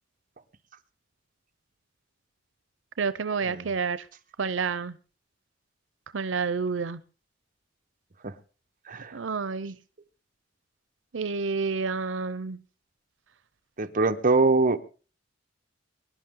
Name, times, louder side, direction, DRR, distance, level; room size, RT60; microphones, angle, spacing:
voice 1, 3.0-4.1 4.4-5.0 6.1-7.0 9.1-9.8 11.1-12.6, right 5 dB, 90° right, 14 dB, 0.7 m, -29 dB
voice 2, 13.8-14.8, right 3 dB, 45° right, 7 dB, 1.1 m, -23 dB
23.5 x 11.0 x 3.8 m, 0.38 s
head